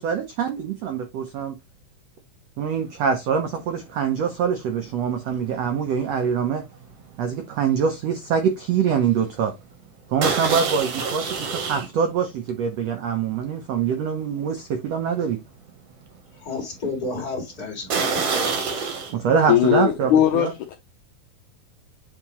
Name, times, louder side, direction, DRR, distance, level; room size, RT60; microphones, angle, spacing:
voice 1, 0.0-1.6 2.6-6.6 7.2-9.5 10.1-15.4 19.1-20.5, right 7 dB, 85° right, 1.4 m, -24 dB
sound 1, 3.0-3.3 3.5-8.2 8.5-8.8 9.1-9.2 10.2-11.9 12.5-12.6 13.2-13.3 13.8-13.9 17.9-19.1, right 5 dB, 60° right, 1.8 m, -27 dB
voice 2, 16.3-18.6, left 3 dB, 30° left, 2.8 m, -32 dB
voice 3, 19.5-20.7, left 11 dB, 75° left, 1.9 m, -19 dB
8.5 x 3.6 x 3.1 m
omnidirectional pair, 4.2 m